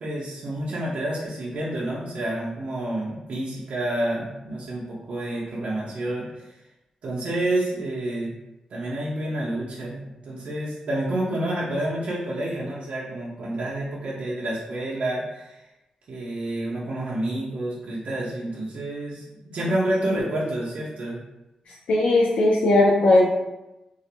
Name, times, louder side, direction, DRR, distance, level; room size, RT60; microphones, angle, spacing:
voice 1, 0.0-6.6 7.0-8.3 8.7-15.6 16.1-19.3 19.5-21.2, right 1 dB, 70° right, -6 dB, 0.5 m, -29 dB
voice 2, 21.9-23.3, left 2 dB, 90° left, -5 dB, 0.3 m, -18 dB
2.3 x 2.0 x 2.7 m, 0.97 s
wide cardioid pair, 105°, 2 cm